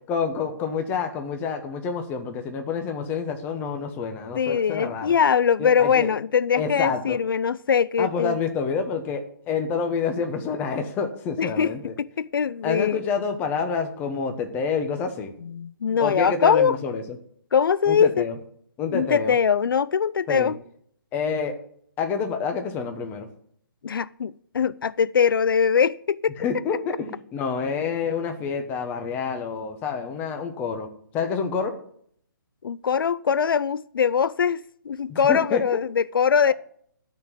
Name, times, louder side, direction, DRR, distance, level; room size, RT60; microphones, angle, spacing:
voice 1, 0.1-5.2 5.6-6.1 6.6-7.2 8.0-11.9 12.6-15.3 16.0-17.0 17.9-18.4 18.8-19.4 20.3-20.5 21.1-21.5 22.0-23.3 26.4-30.9 31.1-31.7 35.1-35.6 36.5-36.6, left 5 dB, 15° left, 1.1 m, -28 dB
voice 2, 4.4-8.4 11.4-13.0 15.4-16.8 17.5-18.2 18.9-20.6 23.8-26.3 32.6-36.5, left 7 dB, 80° left, 0.4 m, -22 dB
12.5 x 4.5 x 8.6 m
hypercardioid pair, 155°, 11 cm